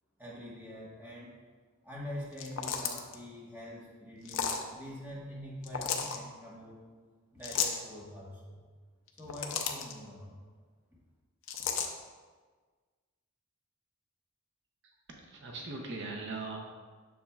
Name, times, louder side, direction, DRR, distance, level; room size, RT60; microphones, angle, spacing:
voice 1, 0.2-1.3 1.8-6.8 7.3-8.6 9.2-10.4, equal, 10° right, -6 dB, 1.3 m, -45 dB
sound 1, 2.3-3.2 4.2-4.6 5.6-6.2 7.4-7.8 9.1-9.9 11.5-11.9, left 6 dB, 60° left, 0.5 m, -33 dB
voice 2, 14.8-16.6, right 3 dB, 55° right, 1 dB, 0.7 m, -40 dB
7.1 x 6.2 x 2.4 m, 1.4 s
head